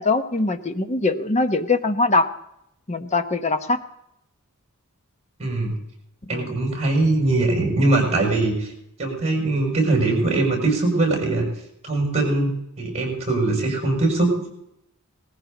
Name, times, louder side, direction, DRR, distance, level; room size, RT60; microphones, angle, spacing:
voice 1, 0.0-2.3 2.9-3.8 6.3-6.5, left 3 dB, 30° left, 8 dB, 0.9 m, -22 dB
voice 2, 5.4-5.8 6.3-8.7 9.0-11.5 11.8-12.5 12.8-14.5, right 2 dB, 30° right, 1 dB, 6.5 m, -21 dB
19.0 x 15.0 x 4.0 m, 0.81 s
head